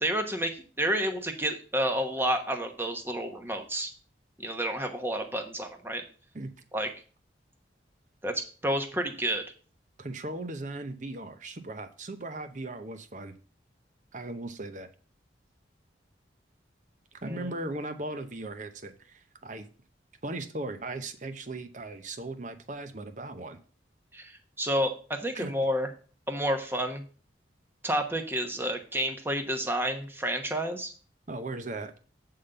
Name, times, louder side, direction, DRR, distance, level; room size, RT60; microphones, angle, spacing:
voice 1, 0.0-3.9 4.4-6.0 6.7-6.9 8.2-9.4 17.3-17.5 24.1-24.3 24.6-25.9 26.3-27.0 27.8-30.9, right 1 dB, 10° right, 5 dB, 1.0 m, -30 dB
voice 2, 10.0-13.3 14.1-14.9 17.2-19.7 20.2-23.6 25.3-25.5 31.3-31.9, right 2 dB, 40° right, 9 dB, 0.8 m, -38 dB
8.4 x 3.8 x 6.6 m, 0.39 s
head